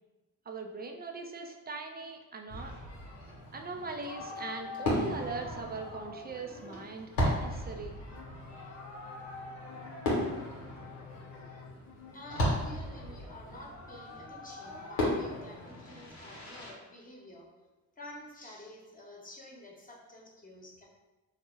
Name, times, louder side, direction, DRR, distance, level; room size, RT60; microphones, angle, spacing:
voice 1, 0.5-2.7 3.5-8.0, right 3 dB, 25° right, 3 dB, 0.4 m, -40 dB
Fireworks, 2.5-16.7, left 1 dB, 90° left, 0.9 m, -36 dB
sound 1, 8.1-13.5, left 5 dB, 50° left, 0.5 m, -51 dB
voice 2, 12.1-17.5 18.0-20.8, left 1 dB, 20° left, -2 dB, 1.0 m, -49 dB
3.4 x 2.1 x 3.1 m, 1.1 s
hypercardioid pair, 50°, 41 cm